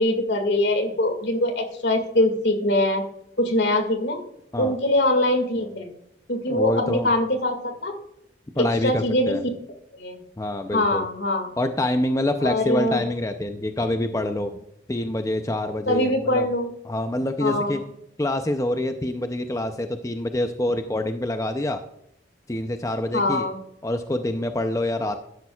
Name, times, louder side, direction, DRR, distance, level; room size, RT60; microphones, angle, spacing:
voice 1, 0.0-3.0 3.4-4.2 4.6-6.0 6.3-7.9 8.6-9.4 9.9-10.2 10.7-11.5 12.4-13.0 15.9-16.7 17.4-17.9 23.1-23.6, left 1 dB, 70° left, 6 dB, 2.0 m, -23 dB
voice 2, 6.5-7.1 8.6-9.4 10.4-11.0 11.6-14.6 14.9-16.5 16.9-17.8 18.2-21.8 22.5-23.5 23.8-25.2, left 1 dB, 15° left, 7 dB, 0.5 m, -26 dB
13.0 x 10.5 x 2.3 m, 0.78 s
head